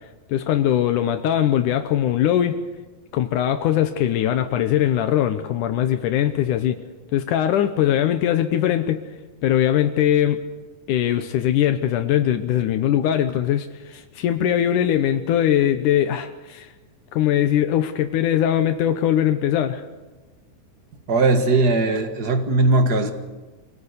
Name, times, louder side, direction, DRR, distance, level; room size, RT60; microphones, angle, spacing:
voice 1, 0.3-2.6 3.1-6.8 7.1-9.0 9.4-10.4 10.9-16.7 17.1-19.8, left 11 dB, 80° left, 9 dB, 2.4 m, -21 dB
voice 2, 21.1-23.1, right 2 dB, 40° right, 7 dB, 1.7 m, -19 dB
25.5 x 18.5 x 8.2 m, 1.2 s
omnidirectional pair, 3.7 m